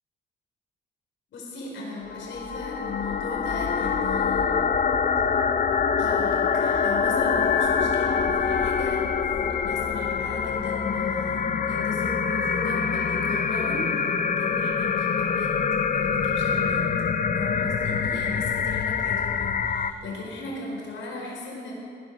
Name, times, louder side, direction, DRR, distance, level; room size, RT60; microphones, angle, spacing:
voice 1, 1.3-4.5 6.0-9.0 9.6-16.8 17.3-21.7, left 3 dB, 75° left, -3 dB, 4.9 m, -37 dB
sound 1, 2.1-19.9, left 6 dB, 40° left, 0.8 m, -25 dB
Musical instrument, 6.8-13.7, left 3 dB, 35° right, 3.5 m, -41 dB
18.5 x 10.5 x 6.4 m, 2.6 s
cardioid pair, 90°, 20 cm